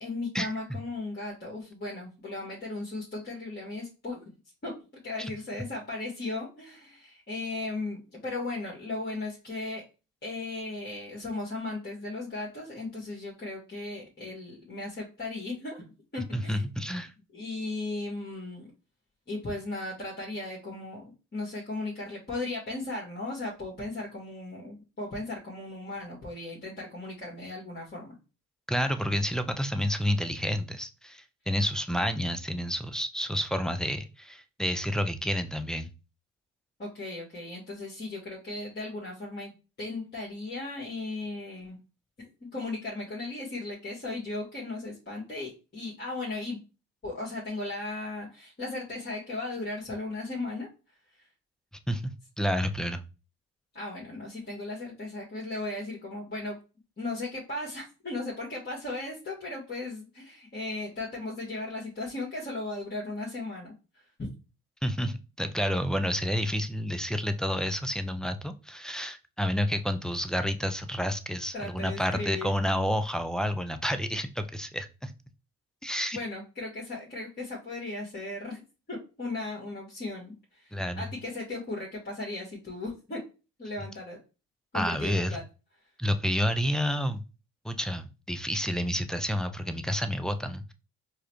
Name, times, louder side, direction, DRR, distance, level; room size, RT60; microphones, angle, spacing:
voice 1, 0.0-4.3 4.6-4.8 5.0-9.8 10.2-15.9 16.1-16.6 17.3-18.7 19.3-21.0 21.3-28.2 36.8-41.8 42.2-46.6 47.0-50.7 53.7-56.6 57.0-63.7 71.5-72.5 76.1-78.6 78.9-83.2 83.6-84.2 84.7-85.4, left 2 dB, 25° left, -4 dB, 1.5 m, -36 dB
voice 2, 16.3-17.1 28.7-35.9 51.9-53.0 64.8-75.1 75.8-76.2 80.7-81.0 84.7-85.4 86.0-87.2 87.6-90.7, equal, ahead, 8 dB, 0.3 m, -30 dB
4.7 x 2.2 x 3.0 m, 0.31 s
hypercardioid pair, 60°, 37 cm